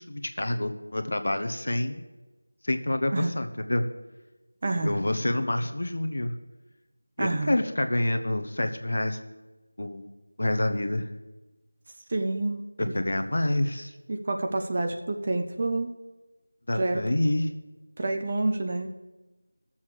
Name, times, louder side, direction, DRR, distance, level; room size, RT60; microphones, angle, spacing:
voice 1, 0.0-2.0 2.6-3.8 4.8-6.3 7.2-9.2 9.8-10.1 10.4-11.1 12.8-13.9 16.7-17.5, left 1 dB, 55° left, 7 dB, 1.0 m, -27 dB
voice 2, 4.6-5.0 7.2-7.5 12.1-12.6 14.1-15.9 16.8-17.0 18.0-18.9, right 2 dB, 25° right, 5 dB, 0.6 m, -28 dB
16.0 x 7.2 x 4.8 m, 1.1 s
figure-of-eight pair, 175°, 0 cm